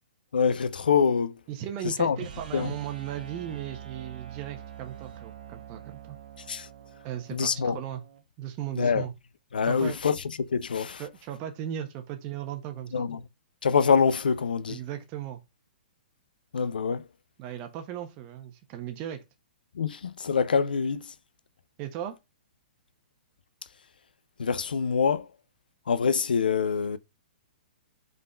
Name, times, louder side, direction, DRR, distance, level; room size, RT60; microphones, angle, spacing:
voice 1, 0.3-1.3 2.0-2.2 2.5-2.7 6.5-6.7 7.3-7.8 8.8-9.1 9.5-10.1 10.5-11.0 12.9-13.2 13.6-14.8 16.5-17.0 19.8-21.1 24.4-25.3 25.9-27.0, left 6 dB, 70° left, 0.6 m, -25 dB
voice 2, 1.5-6.2 7.0-8.0 8.4-9.1 9.6-10.0 11.0-13.1 14.7-15.4 17.4-19.2 21.8-22.1, right 11 dB, 35° right, 1.2 m, -37 dB
sound 1, 2.1-8.2, right 10 dB, 60° right, 1.4 m, -45 dB
5.4 x 4.0 x 5.0 m
figure-of-eight pair, 115°, 5 cm